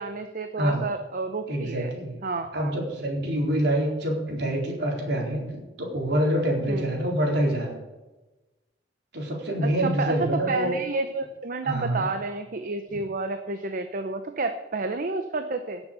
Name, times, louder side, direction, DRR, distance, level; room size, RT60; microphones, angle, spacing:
voice 1, 0.0-1.9 2.2-2.8 6.7-6.8 9.6-15.8, right 3 dB, 50° right, 8 dB, 0.8 m, -30 dB
voice 2, 1.5-2.2 2.5-7.8 9.1-10.8 11.6-12.0, right 1 dB, 65° right, -1 dB, 4.2 m, -26 dB
17.5 x 7.2 x 6.9 m, 1.1 s
head